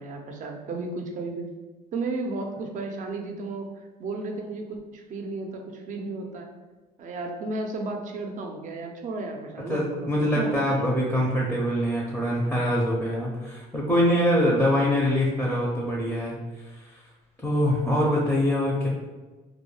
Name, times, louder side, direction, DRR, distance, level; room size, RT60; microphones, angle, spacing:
voice 1, 0.0-1.4 1.9-3.7 4.0-6.5 7.0-11.3, right 3 dB, 50° right, 2 dB, 0.5 m, -34 dB
voice 2, 9.7-17.0 17.4-18.9, equal, 5° left, -3 dB, 0.5 m, -24 dB
2.3 x 2.2 x 3.1 m, 1.2 s
cardioid pair, 110°, 17 cm